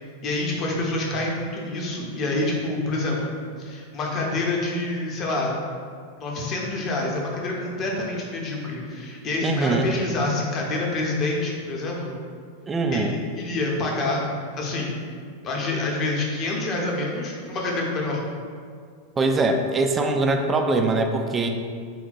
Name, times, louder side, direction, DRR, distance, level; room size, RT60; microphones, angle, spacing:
voice 1, 0.2-3.3 3.6-5.5 6.2-12.1 12.9-14.2 14.6-15.0 15.4-18.2, left 2 dB, 30° left, -2 dB, 0.8 m, -27 dB
voice 2, 9.4-9.9 12.7-13.2 19.2-21.5, right 3 dB, 20° right, 4 dB, 0.3 m, -22 dB
4.0 x 2.2 x 4.2 m, 2.1 s
figure-of-eight pair, 90°, 0 cm